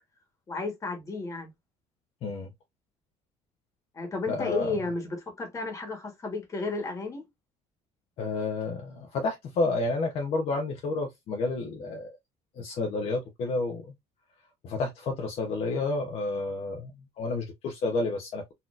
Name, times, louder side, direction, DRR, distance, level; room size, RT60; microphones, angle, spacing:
voice 1, 0.5-1.5 3.9-7.2, left 3 dB, 25° left, 1.3 m, -33 dB
voice 2, 4.3-4.7 8.2-12.1 12.6-13.8 14.6-18.4, left 3 dB, 45° left, 0.7 m, -30 dB
4.1 x 2.8 x 2.4 m
cardioid pair, 160°, 13 cm